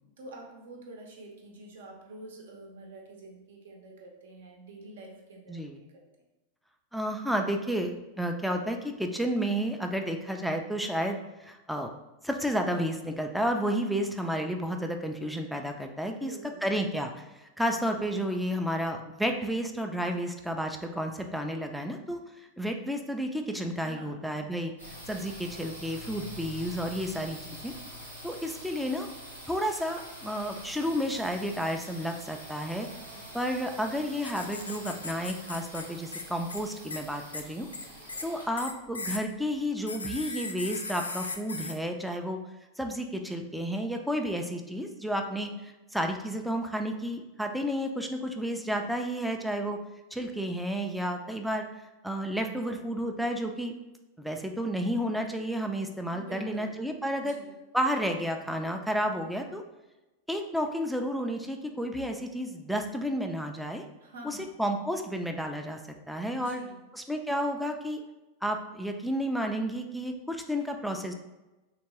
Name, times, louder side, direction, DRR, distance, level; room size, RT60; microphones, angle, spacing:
voice 1, 0.2-6.1 16.0-16.7 23.8-24.4 33.1-33.2 56.1-56.8 57.2-57.5 64.0-64.5 66.3-66.8, right 1 dB, 60° right, 1 dB, 0.7 m, -47 dB
voice 2, 6.9-11.9 12.2-16.3 16.6-17.3 17.6-22.2 22.6-24.7 25.1-27.7 28.2-29.1 29.5-32.9 33.3-37.7 38.2-42.4 42.8-49.8 50.1-51.7 52.0-53.7 54.2-57.4 57.7-59.6 60.3-63.8 64.3-65.8 66.1-66.6 66.9-68.0 68.4-71.1, equal, ahead, 4 dB, 0.3 m, -31 dB
sound 1, 24.8-40.4, equal, 80° right, 1.0 m, -45 dB
sound 2, 34.2-35.8 36.1-36.2 36.5-36.6 36.9-37.0 37.3-37.4 37.7-38.2 38.6-39.2 39.9-41.7, left 3 dB, 75° left, 0.3 m, -37 dB
3.4 x 2.8 x 3.0 m, 1.0 s
figure-of-eight pair, 90°, 0 cm